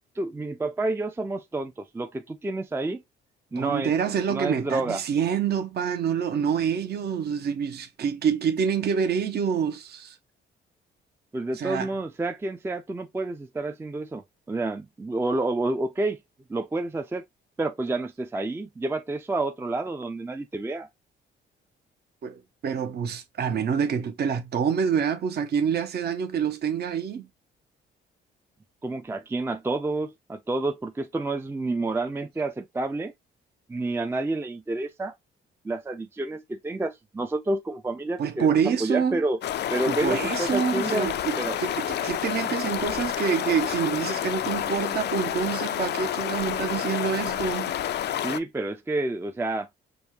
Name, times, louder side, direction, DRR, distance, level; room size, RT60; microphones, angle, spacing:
voice 1, 0.2-3.0 3.5-3.9 4.3-5.0 11.3-14.2 14.5-16.2 16.5-17.2 17.6-20.9 28.8-33.1 33.7-35.1 35.6-38.5 38.8-39.4 39.7-41.1 41.4-41.6 48.2-49.7, right 2 dB, 10° right, 0.4 m, -29 dB
voice 2, 3.6-10.2 11.5-11.9 22.2-27.3 38.2-39.2 39.9-47.8, right 7 dB, 55° right, 0.8 m, -27 dB
sound 1, 39.4-48.4, left 11 dB, 60° left, 0.4 m, -29 dB
5.2 x 2.1 x 3.0 m
cardioid pair, 90°, 20 cm